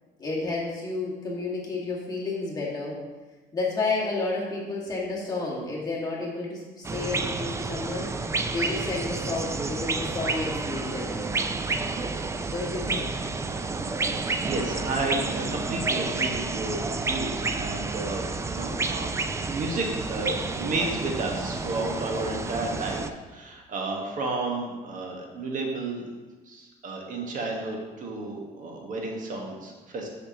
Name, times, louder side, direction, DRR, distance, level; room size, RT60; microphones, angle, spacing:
voice 1, 0.2-3.0 3.5-8.1 8.5-11.4 12.5-13.1, left 3 dB, 25° left, -5 dB, 1.8 m, -31 dB
sound 1, 6.8-23.1, right 3 dB, 15° right, 0.3 m, -30 dB
voice 2, 14.4-19.1 19.5-26.1 26.5-30.1, right 2 dB, 50° right, 0 dB, 1.4 m, -32 dB
7.1 x 5.9 x 2.9 m, 1.3 s
cardioid pair, 110°, 17 cm